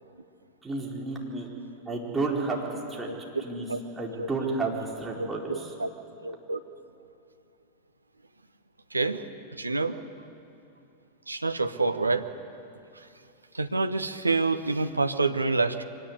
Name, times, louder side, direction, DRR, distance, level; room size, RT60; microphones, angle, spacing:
voice 1, 0.6-1.5 1.9-2.6 2.9-3.1 3.4-3.7 4.0-5.7, right 3 dB, 10° right, -2 dB, 4.4 m, -31 dB
voice 2, 5.2-5.9 6.2-6.6 8.9-9.2 9.6-10.0 11.3-12.3 13.5-15.8, right 3 dB, 80° right, 9 dB, 1.0 m, -27 dB
23.5 x 18.0 x 9.7 m, 2.6 s
figure-of-eight pair, 90°, 0 cm